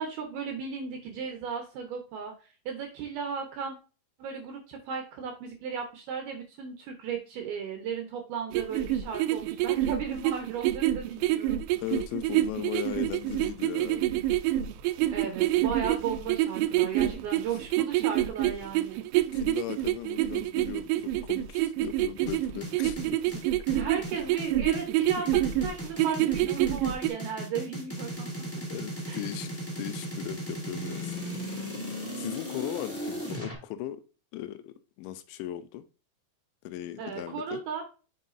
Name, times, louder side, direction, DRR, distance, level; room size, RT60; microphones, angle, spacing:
voice 1, 0.0-3.8 4.2-11.6 15.1-19.0 23.7-28.5 29.1-29.2 37.0-37.8, right 6 dB, 75° right, 2.4 m, -35 dB
sound 1, 8.5-27.1, right 14 dB, 90° right, 3.1 m, -27 dB
voice 2, 11.8-14.1 19.3-23.2 28.7-31.1 32.2-34.0 34.3-35.8 36.6-37.6, left 13 dB, 85° left, 2.8 m, -38 dB
sound 2, 22.3-33.5, equal, 10° left, 0.9 m, -36 dB
8.1 x 5.6 x 2.6 m
omnidirectional pair, 5.6 m